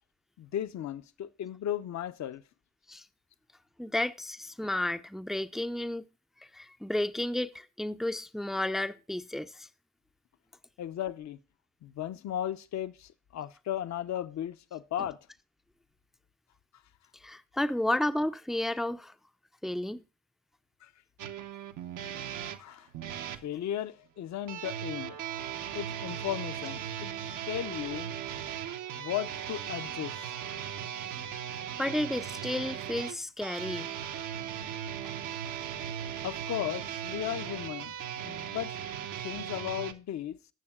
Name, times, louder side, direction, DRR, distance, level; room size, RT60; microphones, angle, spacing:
voice 1, 0.4-2.4 10.8-11.4 11.8-15.2 20.8-20.9 22.6-22.9 23.3-25.2 25.7-27.1 27.5-28.1 29.0-30.3 36.2-37.9 38.2-38.8 39.2-40.4, left 11 dB, 50° left, 0.8 m, -36 dB
voice 2, 3.8-6.0 6.5-9.7 17.2-19.1 19.6-20.0 31.8-33.9, left 1 dB, ahead, 0.5 m, -32 dB
sound 1, 21.2-23.4 24.5-39.9, right 9 dB, 65° right, 0.9 m, -38 dB
Guitar, 24.9-31.9, right 7 dB, 85° right, 1.9 m, -53 dB
16.5 x 7.0 x 2.4 m
hypercardioid pair, 45°, 35 cm